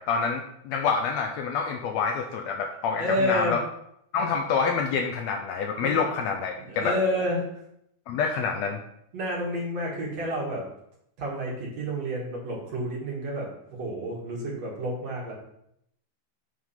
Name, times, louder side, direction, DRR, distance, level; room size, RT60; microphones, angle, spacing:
voice 1, 0.0-3.6 4.1-6.9 8.1-8.8, left 5 dB, 75° left, 3 dB, 1.7 m, -27 dB
voice 2, 3.0-3.6 5.8-5.9 6.6-7.5 9.1-10.6 11.2-13.5 13.8-15.3, equal, 60° right, -3 dB, 2.9 m, -29 dB
7.8 x 3.6 x 5.6 m, 0.74 s
omnidirectional pair, 3.6 m